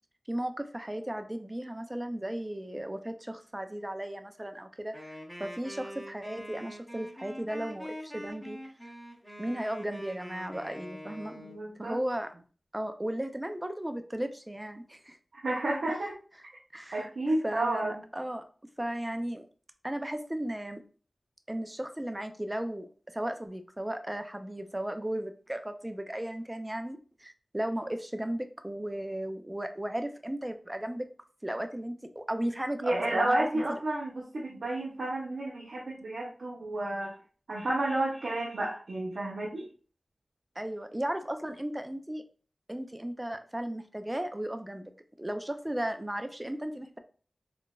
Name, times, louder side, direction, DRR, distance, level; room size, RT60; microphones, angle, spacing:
voice 1, 0.3-8.7 9.4-11.4 11.8-12.3 12.7-15.2 16.7-17.1 17.4-18.4 18.8-19.4 19.8-20.8 21.5-31.1 31.4-33.8 40.6-42.2 42.7-44.9 45.2-47.0, right 1 dB, 15° right, 8 dB, 0.4 m, -35 dB
Wind instrument woodwind instrument, 4.9-11.6, equal, 15° left, 1.4 m, -44 dB
voice 2, 11.4-12.0 15.3-16.1 16.9-17.9 32.8-37.2 37.5-39.7, right 1 dB, 90° right, -4 dB, 0.6 m, -31 dB
3.7 x 2.4 x 2.3 m, 0.40 s
wide cardioid pair, 60°, 0 cm